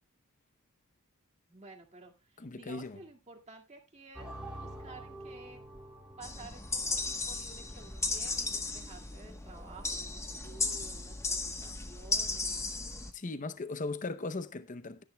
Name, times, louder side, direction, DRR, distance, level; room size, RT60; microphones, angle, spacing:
voice 1, 1.5-5.6 6.2-12.7, right 3 dB, 30° right, 2.0 m, -53 dB
voice 2, 2.4-3.0 13.1-15.0, left 3 dB, 35° left, 0.7 m, -38 dB
sound 1, 4.2-11.4, right 1 dB, 5° right, 2.3 m, -49 dB
sound 2, 6.2-13.1, left 3 dB, 15° left, 1.1 m, -35 dB
16.5 x 10.5 x 2.2 m
head